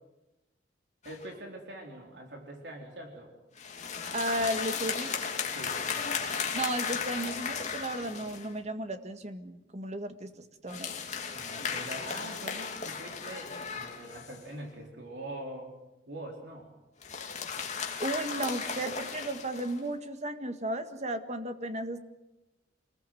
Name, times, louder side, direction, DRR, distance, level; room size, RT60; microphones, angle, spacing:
sound 1, 1.0-1.3 3.6-8.5 10.7-14.5 17.0-19.8, left 6 dB, 40° left, 2.8 m, -36 dB
voice 1, 1.0-3.3 5.5-6.0 11.3-15.7 16.1-16.8, right 1 dB, 65° right, 1 dB, 4.1 m, -43 dB
voice 2, 4.1-5.2 6.5-10.3 10.6-11.0 18.0-22.0, right 1 dB, 35° right, 8 dB, 1.7 m, -34 dB
26.5 x 20.5 x 7.8 m, 0.99 s
head